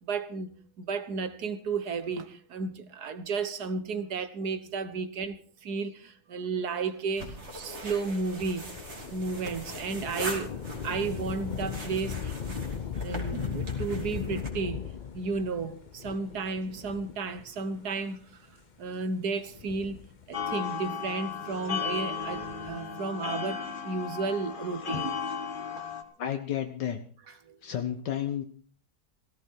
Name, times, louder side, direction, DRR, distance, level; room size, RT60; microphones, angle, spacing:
voice 1, 0.0-0.5 0.8-8.7 9.1-10.5 10.8-12.6 13.0-14.8 15.1-20.0 20.3-25.2 27.5-27.6, right 4 dB, 65° right, 1.7 m, -33 dB
sound 1, 7.2-14.5, right 1 dB, 40° right, 3.3 m, -41 dB
Thunder / Rain, 8.6-17.6 18.3-18.4 19.4-20.6 22.2-22.9, left 7 dB, 55° left, 0.5 m, -38 dB
sound 2, 20.3-26.0, left 6 dB, 30° left, 1.7 m, -35 dB
voice 2, 26.2-27.0 27.2-28.4, left 10 dB, 75° left, 1.7 m, -32 dB
17.0 x 15.0 x 4.6 m
omnidirectional pair, 1.9 m